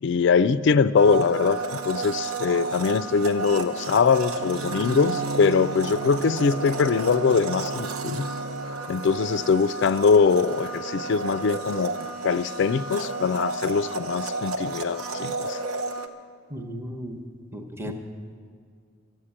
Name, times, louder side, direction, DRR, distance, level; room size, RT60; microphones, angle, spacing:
voice 1, 0.0-8.3 8.9-15.6 17.9-18.0, left 5 dB, 55° left, 15 dB, 0.3 m, -22 dB
Domestic sounds home sounds, 1.0-16.1, right 3 dB, 80° right, 0.8 m, -32 dB
Bowed string instrument, 4.3-8.9, right 5 dB, 65° right, 0.3 m, -35 dB
voice 2, 16.5-17.9, equal, 10° right, 3 dB, 0.8 m, -36 dB
13.0 x 8.0 x 9.8 m, 2.1 s
head